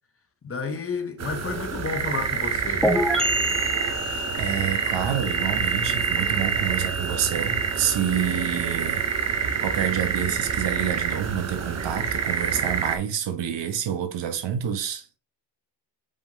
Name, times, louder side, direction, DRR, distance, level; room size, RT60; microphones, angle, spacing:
voice 1, 0.4-2.9, left 5 dB, 30° left, 0.8 m, -31 dB
sound 1, 1.2-13.0, right 6 dB, 35° right, 0.7 m, -27 dB
sound 2, 2.8-10.4, equal, ahead, 1.1 m, -30 dB
voice 2, 3.9-9.1 9.6-15.2, right 9 dB, 70° right, 1.0 m, -28 dB
5.1 x 3.6 x 2.6 m
cardioid pair, 80°, 45 cm